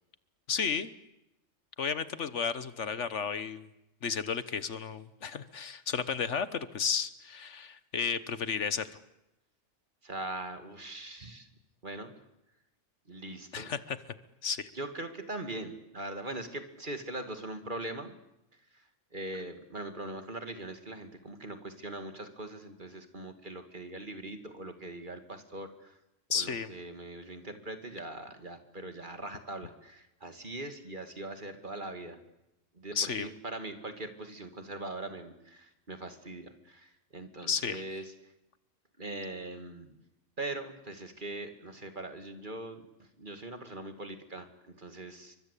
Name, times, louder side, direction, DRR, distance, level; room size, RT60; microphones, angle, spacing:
voice 1, 0.5-0.9 1.8-3.7 4.0-8.9 13.5-14.0 14.4-14.7 26.3-26.7 32.9-33.3 37.5-37.8, left 6 dB, 70° left, 14 dB, 1.5 m, -33 dB
voice 2, 10.0-11.5 11.8-12.1 13.1-13.7 14.7-18.1 18.7-18.8 19.1-26.0 26.3-32.2 32.7-38.1 39.0-40.0 40.4-42.9 43.2-45.4, right 2 dB, 40° right, 7 dB, 2.6 m, -41 dB
29.5 x 24.0 x 8.4 m, 0.91 s
omnidirectional pair, 1.3 m